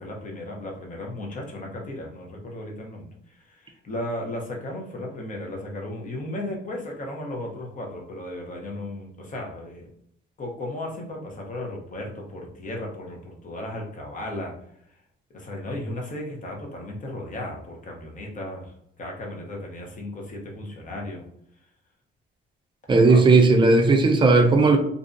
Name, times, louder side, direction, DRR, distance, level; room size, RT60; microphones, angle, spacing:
voice 1, 0.0-9.9 10.4-14.5 15.3-21.2 23.1-23.3, left 1 dB, 40° left, 0 dB, 0.9 m, -35 dB
voice 2, 22.9-24.8, right 3 dB, 25° right, 3 dB, 0.5 m, -16 dB
2.6 x 2.3 x 2.6 m, 0.71 s
cardioid pair, 90°, 20 cm